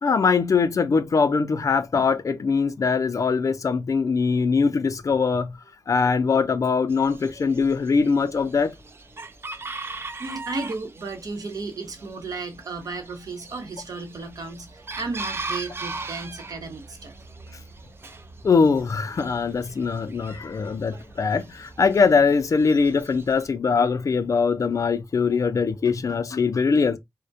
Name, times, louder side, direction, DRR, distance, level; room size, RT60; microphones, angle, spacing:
voice 1, 0.0-5.5 5.9-8.7 18.4-27.0, left 5 dB, 50° left, 0.4 m, -22 dB
Chicken rooster, 6.9-23.5, right 3 dB, 35° right, 0.4 m, -40 dB
voice 2, 10.2-17.1, right 3 dB, 60° right, 0.8 m, -34 dB
2.2 x 2.1 x 2.6 m
wide cardioid pair, 80°, 7 cm